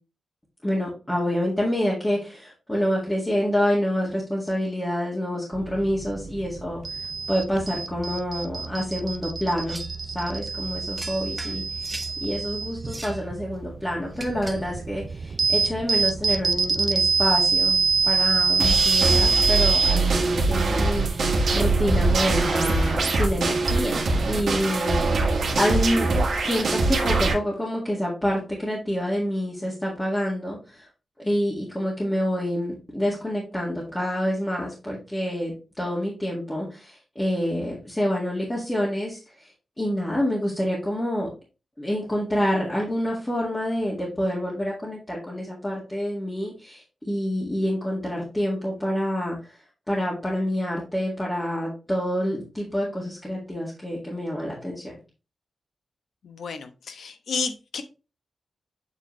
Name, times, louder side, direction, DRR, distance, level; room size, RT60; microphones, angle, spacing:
voice 1, 0.6-6.8 7.3-17.8 18.1-24.0 24.3-25.2 25.6-26.1 26.4-30.9 31.2-39.5 39.8-41.3 41.8-49.6 49.9-54.9, equal, 15° left, -5 dB, 1.9 m, -27 dB
sound 1, 5.5-23.7, right 4 dB, 45° right, 0.5 m, -26 dB
sound 2, 9.7-10.0 11.0-12.2 12.8-13.3 14.1-14.7, right 1 dB, 15° right, 1.0 m, -39 dB
sound 3, 18.6-27.3, right 3 dB, 75° right, 1.7 m, -23 dB
voice 2, 56.2-57.8, left 5 dB, 80° left, 8 dB, 0.9 m, -31 dB
7.9 x 4.3 x 3.2 m, 0.32 s
wide cardioid pair, 125°, 0 cm